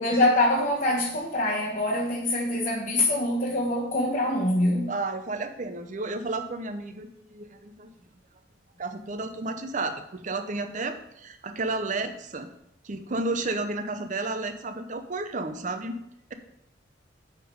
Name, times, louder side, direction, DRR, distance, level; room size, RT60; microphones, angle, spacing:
voice 1, 0.0-4.9, left 1 dB, 40° left, -5 dB, 1.1 m, -24 dB
voice 2, 4.9-7.9 8.8-12.5 12.8-16.0, right 2 dB, 40° right, 8 dB, 0.6 m, -32 dB
8.9 x 3.8 x 5.4 m, 0.77 s
head